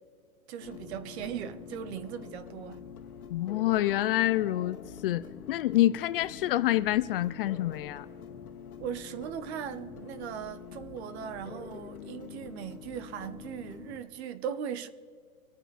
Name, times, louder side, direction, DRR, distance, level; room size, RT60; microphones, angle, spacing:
voice 1, 0.5-2.9 8.8-14.9, right 9 dB, 50° right, 1.2 m, -38 dB
sound 1, 0.6-14.0, left 7 dB, 80° left, 1.6 m, -46 dB
voice 2, 3.3-4.8 5.0-8.1, left 14 dB, 40° left, 0.5 m, -27 dB
25.5 x 9.1 x 4.2 m
hypercardioid pair, 135°, 43 cm